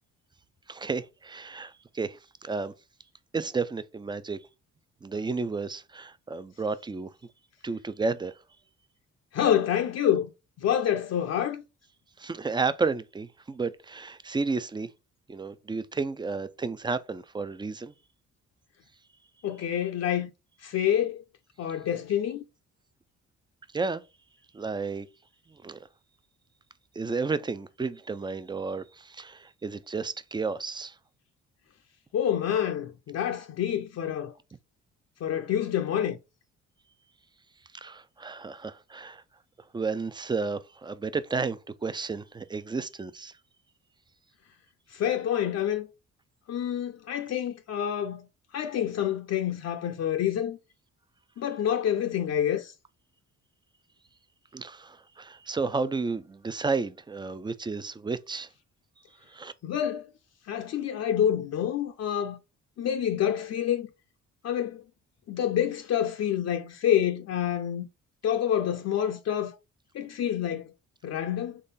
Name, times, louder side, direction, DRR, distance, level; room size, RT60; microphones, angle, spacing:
voice 1, 0.7-2.7 3.3-4.4 5.0-7.1 7.6-8.3 12.2-14.9 15.3-17.9 23.7-24.0 24.5-25.1 25.5-25.9 27.0-30.9 37.7-39.2 39.7-43.3 54.5-58.5 59.3-59.5, right 4 dB, 15° right, 0.4 m, -32 dB
voice 2, 9.3-10.3 10.6-11.6 19.4-20.3 20.6-21.2 21.6-22.4 32.1-34.3 35.2-36.2 44.9-45.9 46.5-48.3 48.5-50.6 51.4-52.7 59.6-60.1 60.5-62.4 62.8-63.9 64.4-64.8 65.3-67.8 68.2-69.5 69.9-70.7 71.0-71.6, left 10 dB, 55° left, 0.6 m, -27 dB
3.8 x 3.1 x 4.0 m
cardioid pair, 90°, 30 cm